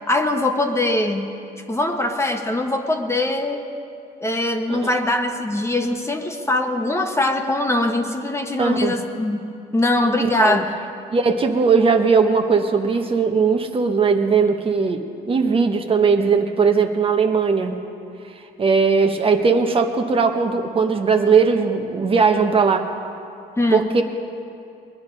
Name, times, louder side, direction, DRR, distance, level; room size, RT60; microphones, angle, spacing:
voice 1, 0.1-1.3 1.7-3.6 4.2-10.7 23.6-23.8, left 2 dB, 15° left, 4 dB, 1.2 m, -22 dB
voice 2, 8.6-9.0 10.2-10.6 11.1-17.8 18.6-22.9 23.7-24.0, right 5 dB, 35° right, 4 dB, 1.1 m, -19 dB
21.5 x 10.5 x 5.3 m, 2.5 s
cardioid pair, 110°, 17 cm